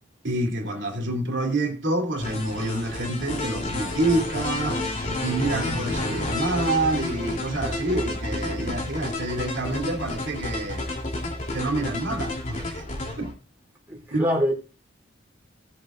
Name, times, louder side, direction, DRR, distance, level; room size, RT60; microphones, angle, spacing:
voice 1, 0.2-4.9 5.2-10.8 11.5-12.8 13.2-13.3 14.1-14.3, right 2 dB, 60° right, 3.0 m, -27 dB
sound 1, 2.2-13.3, left 2 dB, 35° left, 3.2 m, -30 dB
voice 2, 13.9-14.5, equal, 10° right, 3.3 m, -25 dB
18.0 x 7.8 x 2.5 m
head